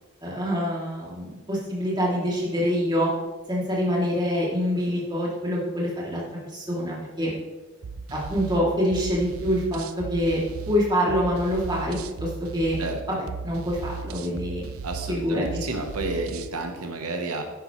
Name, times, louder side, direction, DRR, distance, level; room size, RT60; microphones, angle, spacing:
voice 1, 0.2-3.1 3.5-6.2 6.5-7.3 8.1-12.8 13.1-14.7 15.1-15.6, equal, 20° right, -5 dB, 2.6 m, -26 dB
sound 1, 7.8-16.5, right 4 dB, 75° right, 0.5 m, -37 dB
voice 2, 14.8-17.4, right 2 dB, 90° right, 4 dB, 1.1 m, -31 dB
10.5 x 9.4 x 3.1 m, 1.2 s
head